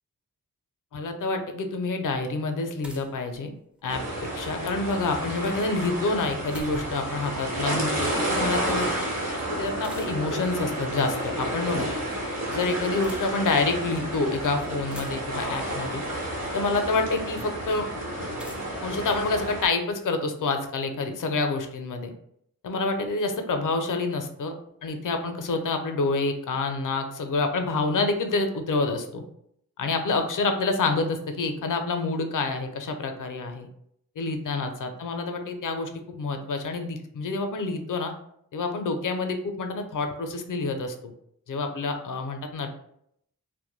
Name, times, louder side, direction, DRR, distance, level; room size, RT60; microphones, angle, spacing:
voice 1, 0.9-3.5 3.8-8.9 9.5-11.9 12.5-16.0 16.5-17.9 18.8-22.1 22.6-24.5 24.8-29.2 29.8-33.7 34.2-38.1 38.5-40.9 41.5-42.7, left 3 dB, 60° left, 6 dB, 0.5 m, -28 dB
sound 1, 2.8-3.9 6.0-7.2 9.8-10.4 11.6-12.2 12.8-13.7 14.4-14.5 14.6-15.5 16.7-16.8 18.4-19.9, equal, 5° right, 0.3 m, -46 dB
sound 2, 3.9-19.7, right 1 dB, 45° right, 1.0 m, -31 dB
2.1 x 2.1 x 3.0 m, 0.72 s
cardioid pair, 50°, 36 cm